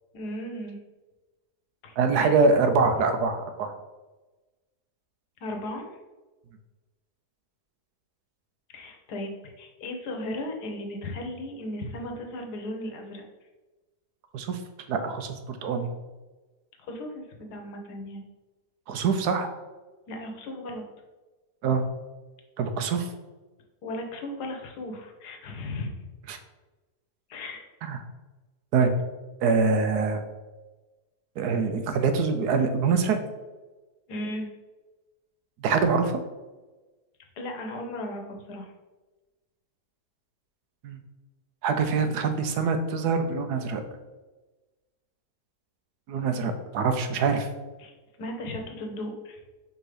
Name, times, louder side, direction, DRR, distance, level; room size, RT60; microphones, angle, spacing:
voice 1, 0.1-0.8 1.8-2.3 5.4-5.9 8.7-13.2 16.9-18.2 20.1-20.8 23.8-26.1 27.3-27.6 34.1-34.5 37.3-38.7 47.8-47.9 48.2-49.4, left 1 dB, 85° left, 3 dB, 1.5 m, -36 dB
voice 2, 2.0-3.7 14.3-14.6 14.9-15.9 18.9-19.5 21.6-21.8 22.6-23.1 26.3-26.4 27.8-28.0 28.7-28.9 29.4-30.2 31.4-33.2 35.6-36.1 40.8-41.0 41.6-43.8 46.1-47.5, right 4 dB, 85° right, 7 dB, 1.3 m, -24 dB
5.2 x 3.7 x 4.9 m, 1.2 s
omnidirectional pair, 1.7 m